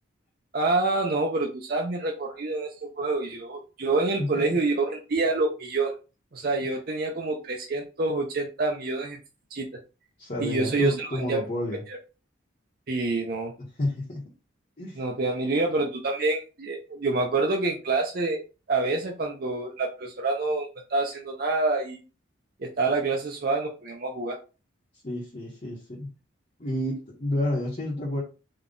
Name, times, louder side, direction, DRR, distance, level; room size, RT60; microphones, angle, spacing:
voice 1, 0.5-5.9 6.3-9.2 9.5-9.7 10.4-11.4 12.9-13.5 15.0-18.4 18.7-22.0 22.6-24.4, right 3 dB, 45° right, 1 dB, 0.5 m, -27 dB
voice 2, 10.2-11.8 13.8-14.2 14.8-15.0 25.0-26.1 26.6-28.2, left 1 dB, 35° left, -5 dB, 0.9 m, -30 dB
3.7 x 2.3 x 3.7 m, 0.32 s
head